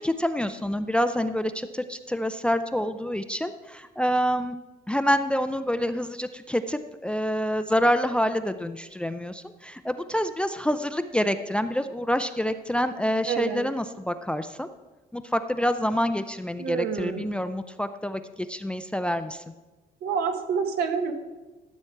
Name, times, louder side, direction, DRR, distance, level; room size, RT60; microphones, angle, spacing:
voice 1, 0.0-4.6 4.9-14.7 15.1-19.4, equal, 5° left, 10 dB, 0.4 m, -27 dB
voice 2, 13.2-13.6 16.6-17.3 20.0-21.1, right 6 dB, 70° right, 6 dB, 1.3 m, -28 dB
13.0 x 7.2 x 4.5 m, 1.2 s
cardioid pair, 110°, 17 cm